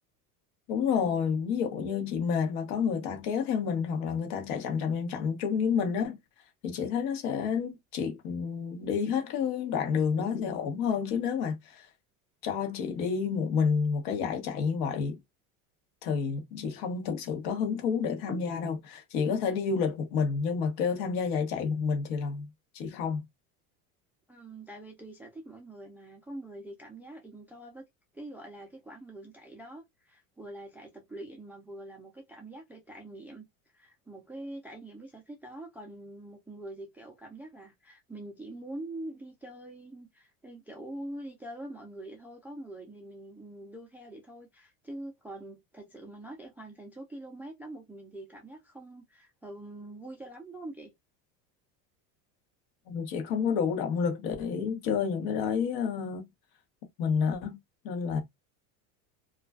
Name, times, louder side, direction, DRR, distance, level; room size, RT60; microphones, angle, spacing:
voice 1, 0.7-6.2 6.6-11.9 12.4-15.2 16.0-22.5 22.7-23.2 52.9-56.3 57.0-57.6 57.8-58.2, left 6 dB, 60° left, 1.0 m, -29 dB
voice 2, 24.3-27.8 28.1-33.4 33.7-50.9, right 1 dB, 5° right, 0.3 m, -44 dB
2.4 x 2.3 x 2.3 m
supercardioid pair, 115°, 42 cm